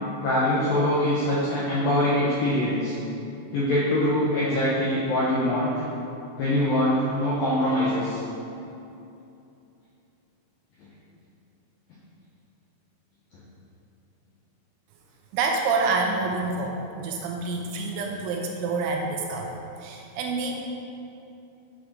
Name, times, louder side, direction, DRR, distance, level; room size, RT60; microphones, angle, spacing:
voice 1, 0.2-2.9 3.5-5.8 6.4-8.2, left 1 dB, 80° left, -7 dB, 2.0 m, -23 dB
voice 2, 15.3-20.6, right 3 dB, 85° right, 1 dB, 3.0 m, -27 dB
9.3 x 5.0 x 6.1 m, 2.8 s
omnidirectional pair, 5.8 m